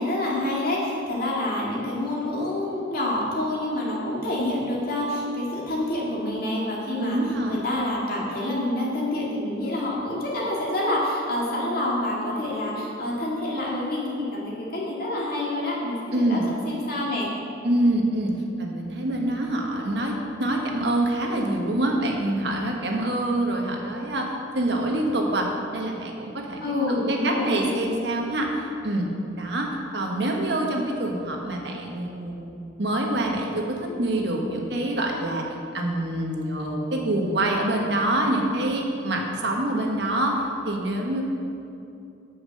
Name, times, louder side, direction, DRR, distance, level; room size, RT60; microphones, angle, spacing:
voice 1, 0.0-7.2 7.5-17.3 26.6-27.6, left 1 dB, 50° left, -4 dB, 2.3 m, -27 dB
voice 2, 7.0-7.6 16.1-16.4 17.6-26.6 26.9-29.1 29.4-32.5 32.8-35.5 35.7-41.2, right 1 dB, 60° right, 1 dB, 1.3 m, -26 dB
8.8 x 7.5 x 6.4 m, 2.7 s
head